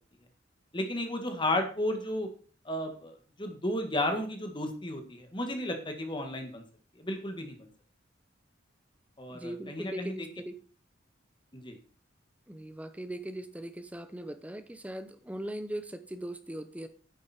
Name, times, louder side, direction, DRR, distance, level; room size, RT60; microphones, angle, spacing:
voice 1, 0.7-2.3 2.7-6.6 7.0-7.7 9.2-10.1 11.5-11.8, left 1 dB, 25° left, 5 dB, 1.8 m, -33 dB
voice 2, 9.3-10.6 12.5-16.9, right 1 dB, 5° right, 10 dB, 0.8 m, -39 dB
9.8 x 8.2 x 4.4 m, 0.40 s
head